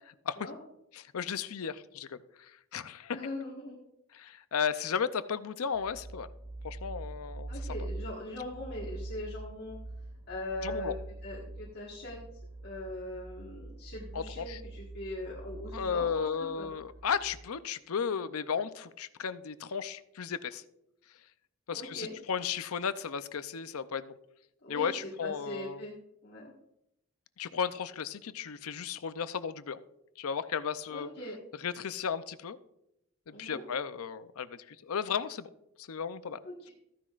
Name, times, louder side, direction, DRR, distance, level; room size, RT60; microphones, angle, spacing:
voice 1, 0.9-3.2 4.1-6.3 6.6-7.7 10.6-11.0 14.1-14.6 15.7-20.6 21.7-24.0 24.7-25.8 27.4-29.8 30.2-31.1 31.6-32.6 33.3-35.5 35.8-36.4, left 6 dB, 80° left, 13 dB, 0.5 m, -34 dB
voice 2, 3.1-3.8 7.5-9.8 10.3-10.9 11.2-12.2 12.6-16.7 21.7-22.2 24.6-24.9 25.2-25.9 26.2-26.5 30.9-31.4 33.3-33.6 36.4-36.7, left 1 dB, 45° left, -4 dB, 1.6 m, -41 dB
sound 1, 5.7-17.4, right 2 dB, 10° right, 1.8 m, -44 dB
14.0 x 10.0 x 2.5 m, 0.83 s
head